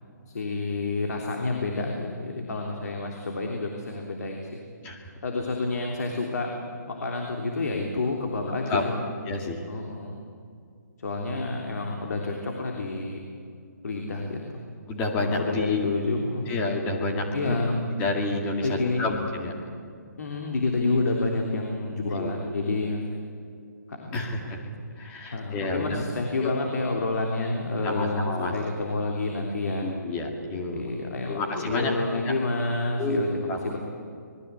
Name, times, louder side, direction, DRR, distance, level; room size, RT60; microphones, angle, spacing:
voice 1, 0.3-4.6 5.2-6.5 6.9-8.9 9.7-10.2 11.0-13.2 13.8-14.4 15.2-16.5 17.3-17.9 18.6-19.1 20.2-23.2 23.9-24.5 25.3-29.9 30.7-33.8, left 3 dB, 60° left, 1 dB, 3.3 m, -29 dB
voice 2, 9.3-9.6 11.3-11.4 14.9-15.9 16.5-17.6 18.0-19.5 22.1-22.3 24.1-24.6 25.0-26.0 26.4-26.5 27.8-28.5 29.8-30.9 31.3-31.9 32.2-32.3 33.0-33.2 33.5-33.6, left 2 dB, 15° left, 1 dB, 2.3 m, -29 dB
26.5 x 20.5 x 8.4 m, 2.3 s
hypercardioid pair, 170°, 10 cm